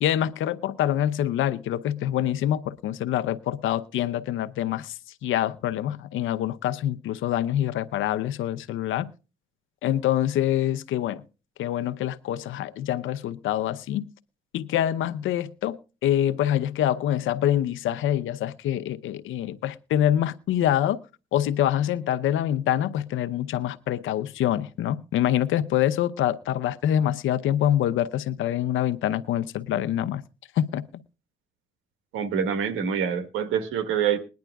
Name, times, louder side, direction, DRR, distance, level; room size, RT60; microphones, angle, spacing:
voice 1, 0.0-9.1 9.8-11.2 11.6-14.1 14.5-21.0 21.3-30.2 30.6-30.8, left 11 dB, 80° left, 0.8 m, -25 dB
voice 2, 32.1-34.2, right 8 dB, 85° right, 1.5 m, -26 dB
21.0 x 10.5 x 2.3 m
cardioid pair, 90°, 20 cm